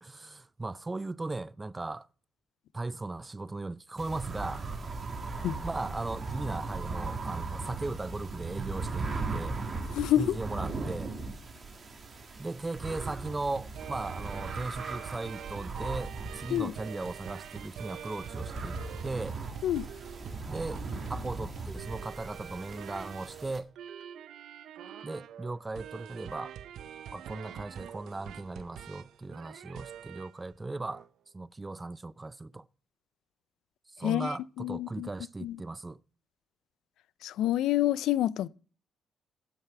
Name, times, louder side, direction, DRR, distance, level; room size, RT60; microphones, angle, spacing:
voice 1, 0.0-2.1 2.7-4.6 5.6-9.6 10.2-11.1 12.4-19.4 20.5-20.8 21.1-23.7 25.0-26.5 27.1-31.0 31.3-32.7 34.0-36.0, right 2 dB, 20° right, 0.4 m, -37 dB
sound 1, 4.0-23.6, right 3 dB, 45° right, 1.9 m, -38 dB
voice 2, 9.9-10.4 16.5-16.7 19.6-19.9 34.0-35.1 35.4-35.6 37.2-38.5, left 13 dB, 85° left, 0.4 m, -28 dB
sound 2, 12.9-30.4 30.8-31.1, right 10 dB, 75° right, 0.5 m, -46 dB
9.0 x 8.1 x 5.8 m
cardioid pair, 90°, 0 cm